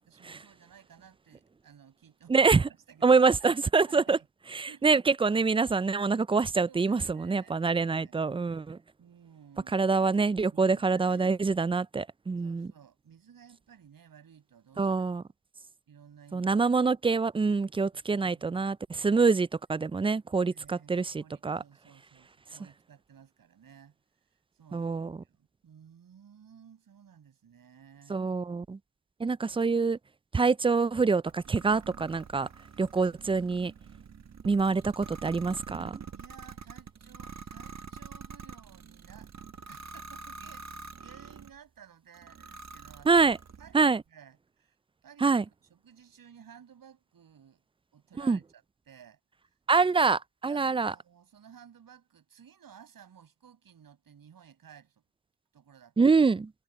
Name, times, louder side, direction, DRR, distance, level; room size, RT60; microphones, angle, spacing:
voice 1, 0.1-2.4 2.7-3.1 3.4-3.5 3.9-4.3 4.7-5.0 6.7-8.2 9.0-9.9 10.4-11.3 12.4-14.9 15.9-16.7 20.5-24.0 24.3-28.2 36.1-39.3 39.7-43.2 43.6-44.8 45.0-45.4 45.7-47.6 47.9-49.2 49.8-50.2 50.5-55.0 55.5-56.1, right 8 dB, 65° right, 7.8 m, -55 dB
voice 2, 2.3-2.7 3.0-4.2 4.5-8.8 9.7-12.7 14.8-15.2 16.3-21.6 24.7-25.2 28.1-28.8 29.2-30.0 30.3-32.5 32.8-33.7 34.5-36.0 43.1-43.4 43.7-44.0 45.2-45.4 48.2-48.4 49.7-50.9 56.0-56.5, right 4 dB, 15° right, 0.4 m, -25 dB
sound 1, 31.3-41.6 42.1-43.8, right 5 dB, 50° right, 1.4 m, -46 dB
cardioid pair, 65°, 36 cm